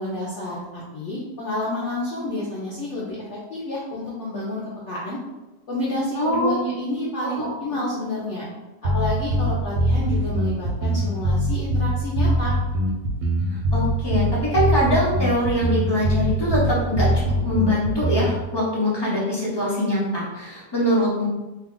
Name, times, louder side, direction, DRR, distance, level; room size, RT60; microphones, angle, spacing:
voice 1, 0.0-4.6 4.9-5.2 5.7-8.5 8.8-12.5, left 1 dB, 65° left, -7 dB, 0.7 m, -29 dB
voice 2, 6.2-6.5 7.2-7.6 13.7-21.3, equal, 40° left, -7 dB, 0.3 m, -23 dB
sound 1, 8.8-18.4, equal, 75° right, 1.0 m, -22 dB
2.9 x 2.3 x 3.7 m, 1.1 s
omnidirectional pair, 1.9 m